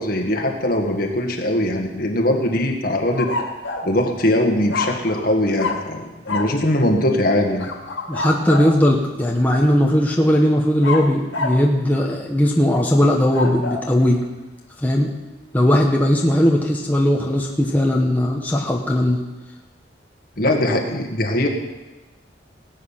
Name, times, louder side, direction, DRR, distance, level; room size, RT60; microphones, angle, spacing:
voice 1, 0.0-3.3 3.8-7.7 20.4-21.5, left 1 dB, 50° left, 2 dB, 1.8 m, -21 dB
sound 1, 3.1-3.9 4.7-5.3 5.6-5.9 6.3-6.6 7.6-8.8 10.8-11.7 13.1-13.9, left 3 dB, 85° left, 2.1 m, -27 dB
voice 2, 8.1-14.2 14.8-15.1 15.5-19.2, left 1 dB, 10° left, -1 dB, 1.2 m, -18 dB
18.5 x 8.6 x 5.8 m, 1.1 s
head